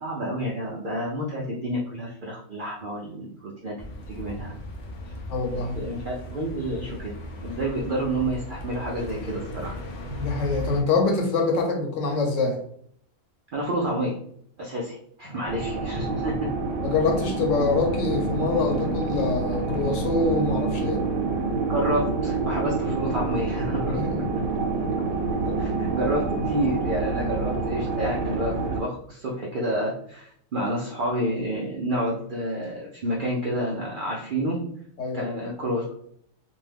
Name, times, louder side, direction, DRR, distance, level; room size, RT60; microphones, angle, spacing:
voice 1, 0.0-3.7 4.1-4.5 5.1-5.2 5.5-7.1 7.4-9.7 13.5-14.2 14.6-16.5 21.7-24.4 25.6-34.6 35.1-35.9, right 1 dB, 70° right, -2 dB, 0.5 m, -29 dB
sound 1, 3.8-10.8, left 1 dB, 90° left, 0.4 m, -37 dB
voice 2, 5.3-5.8 10.1-12.6 16.8-21.0 23.9-24.2 25.5-25.6 35.0-35.3, left 3 dB, 70° left, 3 dB, 0.9 m, -25 dB
sound 2, 15.5-28.8, right 3 dB, 85° right, 1.1 m, -27 dB
2.6 x 2.2 x 3.3 m, 0.65 s
omnidirectional pair, 1.5 m